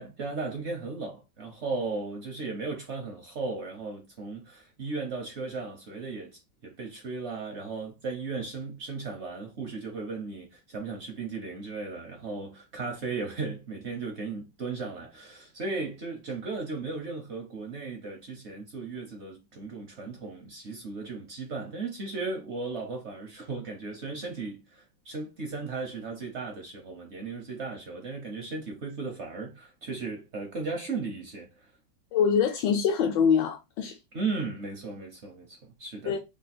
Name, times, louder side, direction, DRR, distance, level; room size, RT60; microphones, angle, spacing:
voice 1, 0.0-31.7 34.1-36.1, right 4 dB, 60° right, 0.7 m, -36 dB
voice 2, 32.1-34.0 36.1-36.2, left 7 dB, 75° left, 1.3 m, -24 dB
3.4 x 2.3 x 4.1 m
omnidirectional pair, 2.1 m